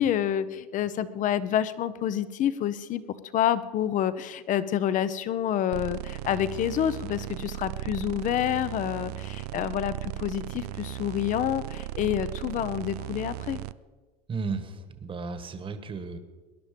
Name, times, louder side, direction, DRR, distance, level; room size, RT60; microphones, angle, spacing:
voice 1, 0.0-3.0 3.3-13.6, left 10 dB, 40° left, 15 dB, 0.9 m, -28 dB
sound 1, 5.7-13.7, right 15 dB, 90° right, 0.5 m, -36 dB
voice 2, 14.3-16.2, right 4 dB, 25° right, 10 dB, 1.6 m, -34 dB
21.0 x 10.5 x 5.3 m, 1.3 s
supercardioid pair, 105°, 20 cm